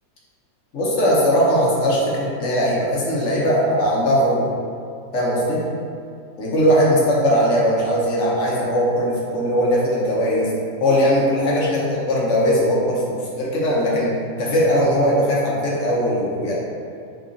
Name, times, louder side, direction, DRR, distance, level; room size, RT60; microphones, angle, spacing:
voice 1, 0.7-4.5 5.1-5.6 6.4-10.5 10.8-14.1 14.4-16.5, equal, 60° left, -5 dB, 0.9 m, -19 dB
3.6 x 2.3 x 3.7 m, 2.3 s
omnidirectional pair, 1.8 m